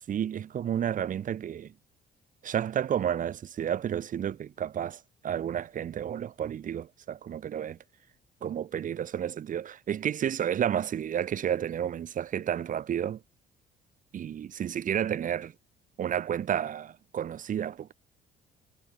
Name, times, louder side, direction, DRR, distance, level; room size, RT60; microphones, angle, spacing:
voice 1, 0.0-1.7 2.4-7.8 8.4-13.2 14.1-15.5 16.0-17.9, right 9 dB, 50° right, 4.6 m, -31 dB
cardioid pair, 110°, 17 cm